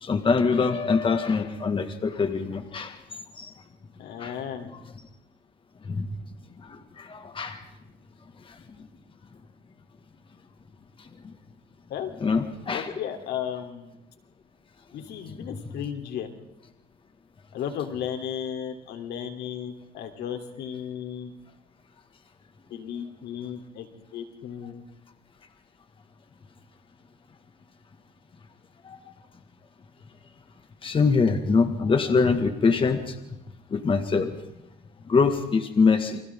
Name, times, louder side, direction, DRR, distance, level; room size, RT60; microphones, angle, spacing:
voice 1, 0.0-3.0 3.4-3.5 4.2-4.4 4.7-4.8 5.9-6.1 6.7-7.6 12.2-12.9 28.8-29.0 30.8-33.2 33.7-34.3 35.1-36.2, left 4 dB, 30° left, 7 dB, 1.9 m, -24 dB
voice 2, 4.0-4.7 11.9-12.1 12.7-13.9 14.9-16.3 17.5-21.3 22.7-24.8, left 9 dB, 75° left, 5 dB, 3.4 m, -34 dB
29.0 x 25.0 x 3.7 m, 0.91 s
cardioid pair, 110°, 17 cm